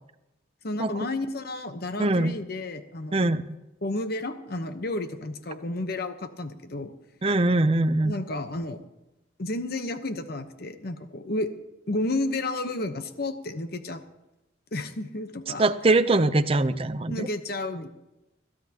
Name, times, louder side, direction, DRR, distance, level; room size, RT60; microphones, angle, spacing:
voice 1, 0.6-3.2 3.8-6.9 8.0-8.8 9.4-11.5 11.9-14.0 14.7-15.6 17.1-17.9, left 2 dB, 50° left, 9 dB, 1.0 m, -31 dB
voice 2, 2.0-2.3 3.1-3.6 7.2-8.1 15.6-17.3, right 2 dB, 30° right, 11 dB, 0.6 m, -22 dB
22.5 x 13.0 x 2.9 m, 0.96 s
head